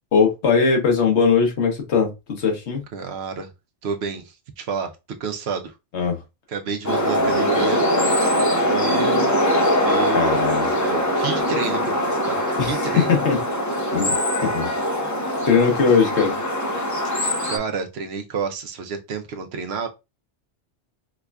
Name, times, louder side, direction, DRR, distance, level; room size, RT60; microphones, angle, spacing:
voice 1, 0.1-2.8 5.9-6.2 7.3-7.5 10.1-10.7 12.6-13.4 13.9-14.7 15.5-16.4, left 5 dB, 70° left, 1.2 m, -20 dB
voice 2, 2.9-3.5 3.8-4.9 5.2-5.7 6.5-7.8 8.6-9.4 9.8-13.1 17.5-19.9, right 5 dB, 70° right, 0.8 m, -30 dB
sound 1, 6.8-17.6, equal, 25° left, 0.4 m, -22 dB
4.7 x 2.4 x 2.2 m
omnidirectional pair, 1.2 m